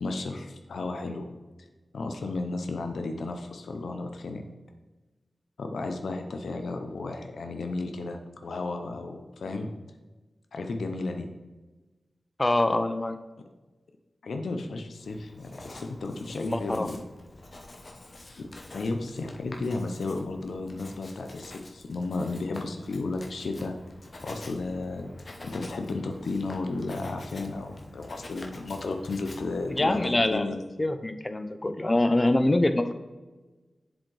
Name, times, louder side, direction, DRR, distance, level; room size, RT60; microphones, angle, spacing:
voice 1, 0.0-1.3 1.9-4.4 5.6-9.7 10.5-11.3 14.2-17.0 18.4-23.7 24.2-25.1 25.4-30.6, left 3 dB, 80° left, 5 dB, 0.5 m, -33 dB
voice 2, 12.4-13.2 16.4-16.9 29.7-32.9, left 1 dB, 30° left, 9 dB, 0.6 m, -25 dB
Writing, 15.0-30.3, left 2 dB, 50° left, 0.9 m, -47 dB
7.1 x 5.0 x 3.3 m, 1.2 s
cardioid pair, 45°, 0 cm